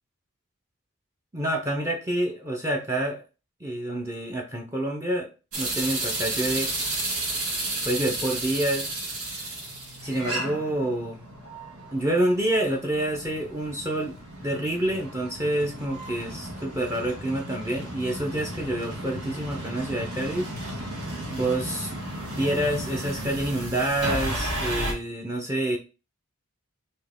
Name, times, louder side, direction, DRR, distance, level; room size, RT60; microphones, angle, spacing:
voice 1, 1.3-3.2 3.6-5.3 5.6-6.7 7.8-8.9 9.2-9.5 10.0-11.2 11.9-14.1 14.4-20.8 21.3-21.9 22.3-25.8, right 1 dB, 15° right, 1 dB, 0.5 m, -27 dB
sound 1, 5.5-24.9, right 1 dB, 80° right, 1.6 m, -33 dB
4.3 x 2.8 x 3.5 m, 0.32 s
head